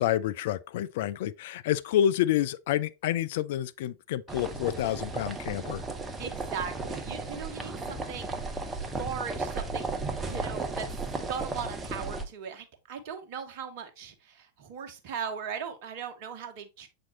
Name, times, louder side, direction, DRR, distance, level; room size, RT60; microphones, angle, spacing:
voice 1, 0.0-5.8, left 11 dB, 55° left, 0.3 m, -28 dB
sound 1, 4.3-12.2, right 3 dB, 15° right, 0.8 m, -35 dB
voice 2, 6.2-8.3 8.8-10.0 10.2-11.0 11.3-16.9, right 7 dB, 50° right, 1.1 m, -38 dB
7.4 x 4.3 x 3.0 m
figure-of-eight pair, 90°, 0 cm